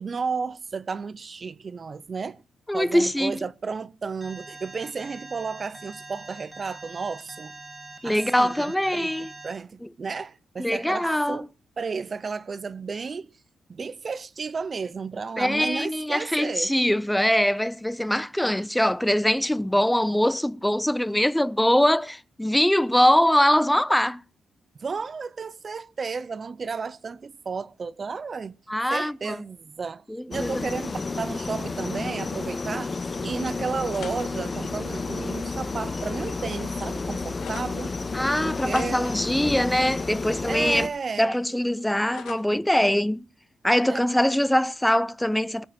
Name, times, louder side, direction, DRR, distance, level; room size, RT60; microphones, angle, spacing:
voice 1, 0.0-2.4 2.7-7.5 8.0-9.1 9.4-11.5 11.8-13.3 13.7-16.7 24.8-28.6 28.9-37.9 38.4-39.1 40.5-41.3 43.9-44.0, right 5 dB, 40° right, 0.7 m, -33 dB
voice 2, 2.7-3.4 8.0-9.3 9.8-9.9 10.6-11.5 15.4-24.2 28.7-29.4 30.1-30.5 38.1-40.9 41.2-43.2 43.6-45.6, left 1 dB, 5° left, 0.5 m, -23 dB
Alarm, 4.2-9.5, right 2 dB, 15° right, 5.4 m, -43 dB
sound 1, 30.3-40.9, left 3 dB, 30° left, 1.2 m, -31 dB
sound 2, 33.9-37.7 38.3-40.7 41.0-42.6, left 8 dB, 85° left, 2.4 m, -48 dB
21.0 x 7.4 x 4.4 m
cardioid pair, 105°, 0 cm